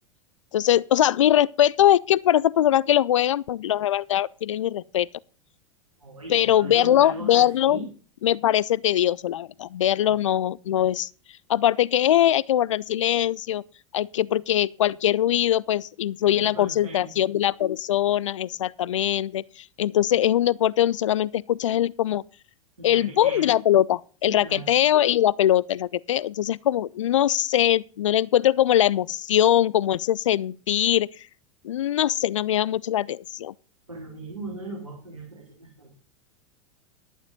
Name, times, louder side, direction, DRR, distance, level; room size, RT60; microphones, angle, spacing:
voice 1, 0.5-5.1 6.3-7.8 8.2-11.1 11.5-13.6 13.9-22.2 22.8-31.1 31.6-33.5, left 12 dB, 65° left, 0.5 m, -22 dB
voice 2, 6.0-7.9 10.0-10.1 16.3-17.1 22.8-23.5 24.3-24.7 33.9-36.0, right 2 dB, 80° right, 3.3 m, -39 dB
11.5 x 10.5 x 3.9 m
figure-of-eight pair, 85°, 17 cm